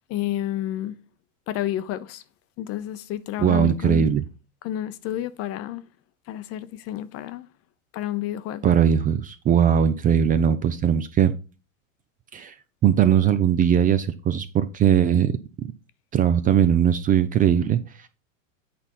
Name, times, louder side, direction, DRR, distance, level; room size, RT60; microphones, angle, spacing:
voice 1, 0.1-1.0 1.5-2.2 2.6-4.1 4.6-5.8 6.3-7.5 7.9-8.7, left 13 dB, 35° left, 0.7 m, -30 dB
voice 2, 3.4-4.2 8.6-11.3 12.3-12.5 12.8-15.3 16.1-18.1, right 8 dB, 20° right, 0.5 m, -20 dB
8.5 x 4.3 x 5.4 m
hypercardioid pair, 115°, 39 cm